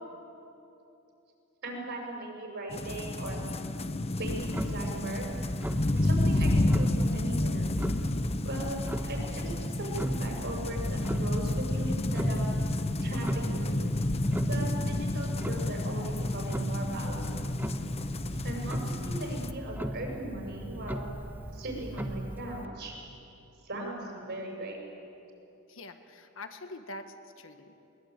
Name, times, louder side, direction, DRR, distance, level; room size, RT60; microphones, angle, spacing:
voice 1, 1.6-3.4 4.1-5.3 6.0-7.7 8.4-9.4 9.8-12.5 13.0-13.8 14.5-17.4 18.4-21.0 21.5-23.0 23.6-24.8, right 1 dB, 55° right, 0 dB, 6.4 m, -38 dB
sound 1, 2.7-19.5, left 1 dB, 30° left, 0.9 m, -30 dB
Clock, 4.2-22.7, right 1 dB, 10° right, 1.1 m, -38 dB
voice 2, 25.7-27.7, left 2 dB, 65° left, 7 dB, 1.6 m, -44 dB
21.5 x 21.0 x 9.0 m, 2.9 s
head